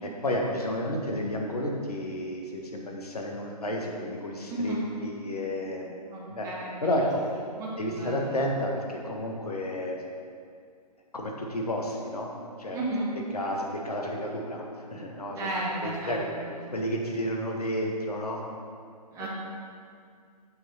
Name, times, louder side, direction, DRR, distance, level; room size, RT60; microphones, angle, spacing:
voice 1, 0.0-6.0 6.3-6.5 6.8-7.2 7.8-10.0 11.1-12.3 12.6-12.8 13.3-14.6 14.9-15.5 15.8-16.3 16.7-18.4 19.2-19.3, left 1 dB, 65° left, 0 dB, 1.6 m, -31 dB
voice 2, 4.5-4.8 6.1-7.1 7.5-8.3 12.7-13.1 15.3-16.4 19.1-19.3, right 2 dB, 15° right, -6 dB, 1.9 m, -33 dB
8.2 x 6.2 x 5.6 m, 2.2 s
figure-of-eight pair, 130°, 21 cm